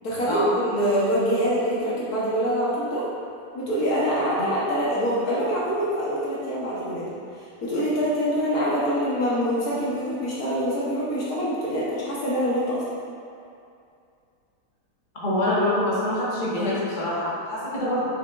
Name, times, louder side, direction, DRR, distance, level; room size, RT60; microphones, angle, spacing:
voice 1, 0.0-3.0 3.5-7.1 7.6-12.8, equal, 70° left, -8 dB, 1.6 m, -25 dB
voice 2, 15.1-18.0, left 1 dB, 30° left, -9 dB, 1.5 m, -25 dB
6.8 x 6.1 x 2.4 m, 2.5 s
omnidirectional pair, 1.7 m